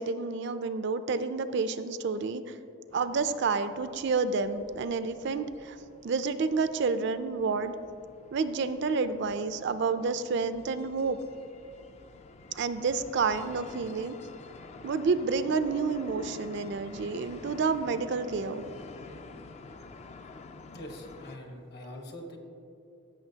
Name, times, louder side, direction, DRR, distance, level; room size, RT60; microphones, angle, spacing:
voice 1, 0.0-2.6 2.9-5.8 6.0-7.7 8.3-11.2 12.5-14.2 14.8-18.6, right 4 dB, 60° right, 11 dB, 0.4 m, -29 dB
sound 1, 2.9-21.4, left 3 dB, 35° left, 0.3 m, -49 dB
voice 2, 20.7-22.4, left 1 dB, 55° left, 2 dB, 1.2 m, -43 dB
14.5 x 6.3 x 2.8 m, 2.6 s
head